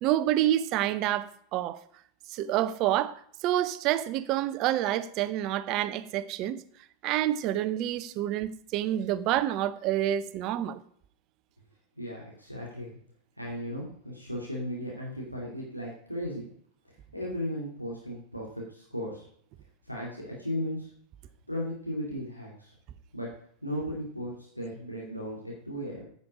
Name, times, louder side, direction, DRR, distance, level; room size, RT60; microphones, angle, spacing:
voice 1, 0.0-1.8 2.3-6.6 7.0-10.8, right 13 dB, 40° right, 0.7 m, -28 dB
voice 2, 12.0-13.0 13.4-16.5 17.1-19.2 19.9-20.9 21.5-22.7 23.1-23.3 23.6-26.0, equal, 90° left, 2.4 m, -36 dB
9.6 x 8.4 x 5.0 m
figure-of-eight pair, 90°, 0 cm